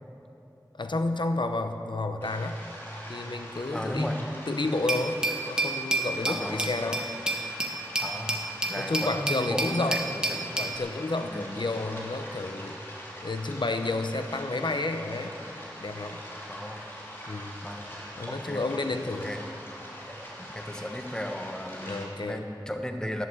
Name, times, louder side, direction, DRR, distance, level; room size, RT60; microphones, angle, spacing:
voice 1, 0.8-2.6 3.1-7.1 8.8-10.0 10.6-12.7 13.2-15.3 15.8-16.2 17.3-17.6 18.2-19.3 21.8-22.4, left 2 dB, 80° left, 7 dB, 0.8 m, -31 dB
sound 1, 2.2-22.1, equal, 30° left, 3.1 m, -43 dB
voice 2, 3.7-4.2 6.3-6.6 8.0-10.7 11.3-11.6 16.5-16.8 17.6-18.0 18.3-18.7 19.2-19.4 20.4-23.3, left 1 dB, 10° left, 4 dB, 1.1 m, -35 dB
Glass, 4.9-10.8, right 2 dB, 10° right, 1.4 m, -30 dB
11.5 x 11.0 x 7.8 m, 2.8 s
wide cardioid pair, 50°, 8 cm